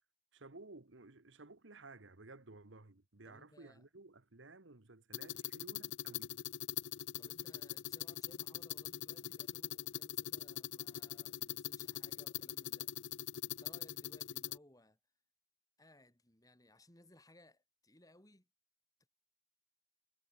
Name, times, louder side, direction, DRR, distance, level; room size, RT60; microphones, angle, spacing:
voice 1, 0.3-6.4, right 3 dB, 80° right, 1.5 m, -55 dB
voice 2, 3.2-3.9 6.9-15.0 15.8-18.5, left 1 dB, 20° left, 3.9 m, -64 dB
sound 1, 5.1-14.6, left 12 dB, 70° left, 0.5 m, -42 dB
head